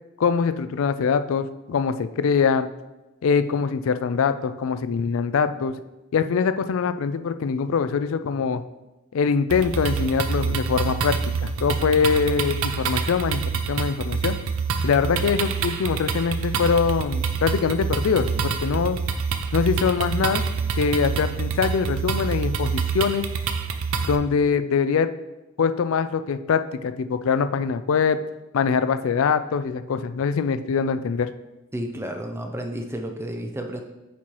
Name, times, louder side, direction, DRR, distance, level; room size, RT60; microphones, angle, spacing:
voice 1, 0.2-2.7 3.2-5.7 6.1-8.6 9.1-13.4 13.7-14.4 14.8-19.0 19.5-20.4 20.8-23.3 24.1-25.1 25.6-28.2 28.5-31.3, left 6 dB, 65° left, 11 dB, 0.3 m, -23 dB
sound 1, 9.5-24.2, right 5 dB, 70° right, 0.5 m, -26 dB
voice 2, 31.7-33.8, equal, 10° right, 4 dB, 0.5 m, -31 dB
8.2 x 4.5 x 3.0 m, 1.0 s
head